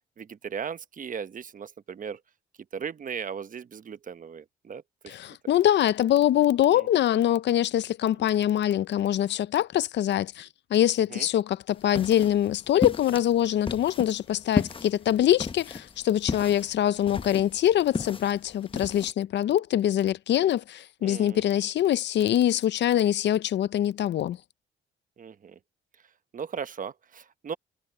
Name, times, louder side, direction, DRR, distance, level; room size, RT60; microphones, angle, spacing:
voice 1, 0.2-2.2 2.7-5.1 6.7-6.9 11.1-11.3 21.0-21.4 25.2-25.6 26.3-27.6, right 7 dB, 45° right, 1.0 m, -37 dB
voice 2, 5.1-24.4, left 11 dB, 65° left, 0.6 m, -24 dB
sound 1, 11.7-19.1, left 4 dB, 25° left, 0.9 m, -34 dB
cardioid pair, 90°, 20 cm